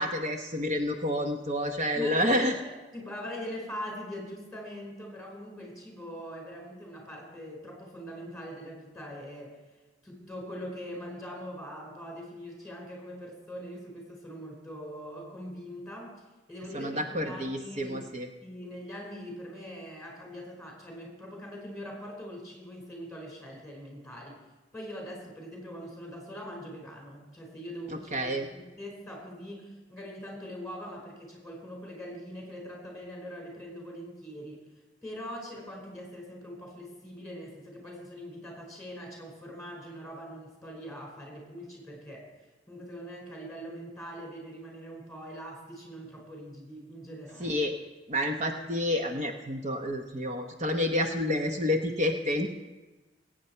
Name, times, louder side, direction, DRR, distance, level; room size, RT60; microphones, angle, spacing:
voice 1, 0.0-2.5 16.7-18.3 28.1-28.5 47.4-47.7 48.1-52.5, left 1 dB, 40° right, 3 dB, 0.9 m, -29 dB
voice 2, 1.9-9.6 10.0-16.2 16.5-18.0 18.4-24.3 24.7-34.7 35.0-42.3 42.7-47.6, equal, 5° left, -1 dB, 4.8 m, -42 dB
21.5 x 8.9 x 4.4 m, 1.2 s
head